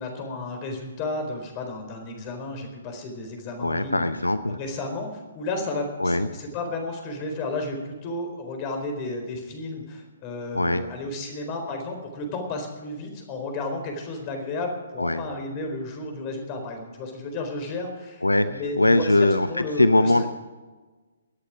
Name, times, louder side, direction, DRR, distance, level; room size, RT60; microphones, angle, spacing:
voice 1, 0.0-4.1 4.5-20.3, left 2 dB, 30° left, 4 dB, 4.1 m, -33 dB
voice 2, 3.6-4.6 6.0-6.3 10.5-10.8 15.0-15.2 18.2-19.5 19.8-20.2, left 2 dB, 90° left, 12 dB, 0.8 m, -21 dB
23.5 x 8.8 x 5.0 m, 1.3 s
figure-of-eight pair, 130°, 0 cm